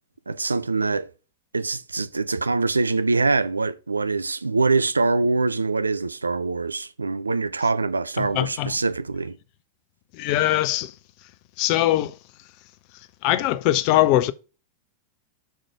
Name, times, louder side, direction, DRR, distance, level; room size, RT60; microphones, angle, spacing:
voice 1, 0.3-1.1 1.5-9.4, right 3 dB, 80° right, 0.4 m, -24 dB
voice 2, 8.2-8.7 10.1-10.9 11.6-12.2 13.2-14.3, left 14 dB, 45° left, 0.5 m, -21 dB
5.7 x 5.0 x 4.7 m
figure-of-eight pair, 90°, 0 cm